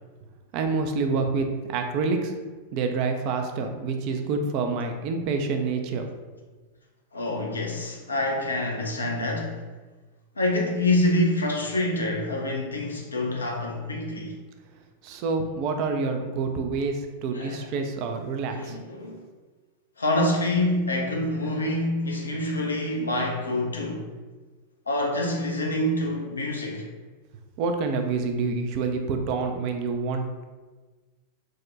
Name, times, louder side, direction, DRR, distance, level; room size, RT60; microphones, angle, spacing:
voice 1, 0.5-2.3 2.7-6.1 15.0-18.8 27.6-30.4, right 4 dB, 45° right, 5 dB, 0.3 m, -27 dB
voice 2, 7.1-9.6 10.4-14.4 17.3-17.7 18.5-19.2 20.0-24.0 24.9-26.9, left 1 dB, 75° left, 0 dB, 0.5 m, -26 dB
3.4 x 2.1 x 2.7 m, 1.3 s
figure-of-eight pair, 90°, 0 cm